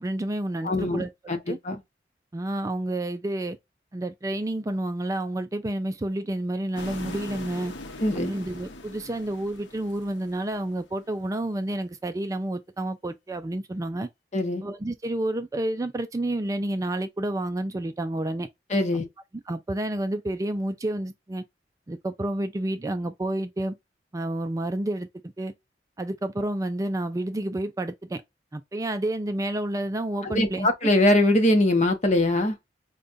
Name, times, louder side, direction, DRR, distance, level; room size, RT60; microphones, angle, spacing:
voice 1, 0.0-1.6 2.3-3.6 3.9-7.7 8.2-14.1 14.6-18.5 19.5-21.4 21.9-23.7 24.1-25.5 26.0-28.2 28.5-30.9, right 1 dB, 20° right, 0.3 m, -30 dB
voice 2, 0.6-1.8 8.0-8.3 14.3-14.6 18.7-19.1 30.2-32.6, left 1 dB, 40° left, 0.8 m, -22 dB
sound 1, 6.7-11.0, left 2 dB, 90° left, 0.8 m, -41 dB
5.0 x 2.2 x 2.5 m
head